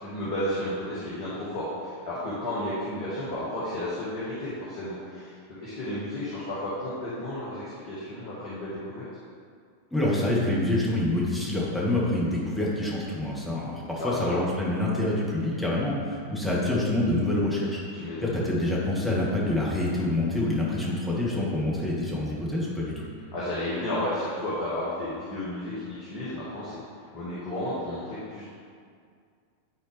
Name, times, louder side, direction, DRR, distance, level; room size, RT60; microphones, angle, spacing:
voice 1, 0.0-9.1 14.0-14.4 18.0-18.4 23.3-28.4, left 1 dB, 50° left, -9 dB, 1.8 m, -32 dB
voice 2, 9.9-23.1, left 1 dB, 5° left, -6 dB, 1.9 m, -27 dB
11.0 x 4.2 x 3.5 m, 2.2 s
figure-of-eight pair, 90°, 0 cm